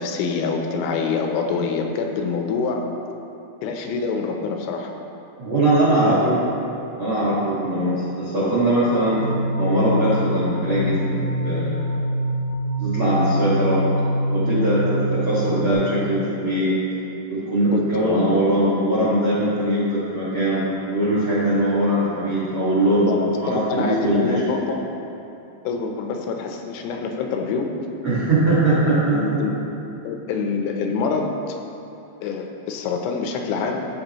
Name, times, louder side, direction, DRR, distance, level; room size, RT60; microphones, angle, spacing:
voice 1, 0.0-2.9 3.6-4.9 17.7-18.4 22.0-22.3 23.0-24.8 25.6-27.8 29.1-29.5 30.0-31.6 32.2-33.8, left 5 dB, 85° left, 3 dB, 3.2 m, -26 dB
voice 2, 5.4-6.4 6.9-9.2 9.6-11.9 12.8-13.8 14.3-16.7 17.3-23.1 23.4-24.5 28.0-29.4, right 1 dB, 90° right, -10 dB, 1.1 m, -21 dB
sound 1, 9.0-15.7, equal, 65° left, 2.7 m, -24 dB
15.0 x 6.0 x 3.0 m, 2.8 s
omnidirectional pair, 5.4 m